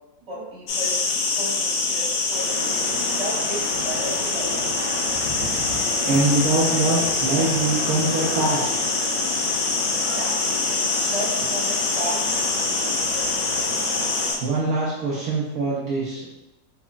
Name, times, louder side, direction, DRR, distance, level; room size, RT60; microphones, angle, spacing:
voice 1, 0.3-1.0 1.4-2.7 3.1-4.9 9.8-9.9 10.1-10.7 11.0-13.0, right 1 dB, 25° right, -7 dB, 1.0 m, -34 dB
sound 1, 0.7-14.4, left 3 dB, 80° left, 1.3 m, -25 dB
sound 2, 2.3-14.3, left 1 dB, 35° left, 1.0 m, -32 dB
voice 2, 6.0-8.7 14.4-16.2, right 2 dB, 65° right, -6 dB, 1.0 m, -23 dB
4.0 x 2.9 x 2.3 m, 0.97 s
omnidirectional pair, 1.9 m